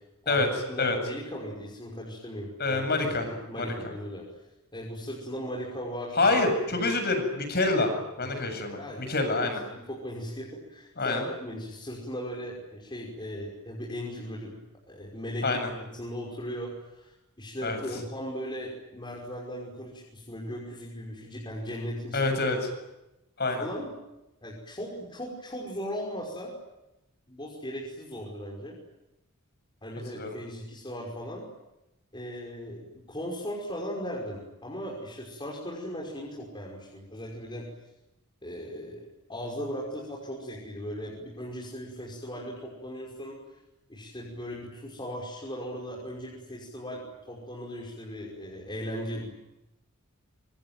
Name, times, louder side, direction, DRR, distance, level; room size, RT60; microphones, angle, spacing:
voice 1, 0.7-4.2 4.7-6.2 6.7-6.8 8.3-9.1 9.4-14.6 14.9-15.6 16.0-22.4 23.5-23.9 24.4-26.5 27.3-28.8 29.8-31.4 32.1-37.7 38.4-39.0 39.3-43.4 43.9-49.3, equal, 20° left, -3 dB, 5.7 m, -38 dB
voice 2, 2.6-3.3 3.6-3.7 6.1-7.9 8.2-9.6 11.0-11.2 15.4-15.7 17.6-17.8 22.1-22.6 23.4-23.6 30.2-30.4, left 3 dB, 50° left, 7 dB, 7.4 m, -26 dB
26.0 x 25.0 x 9.3 m, 0.95 s
head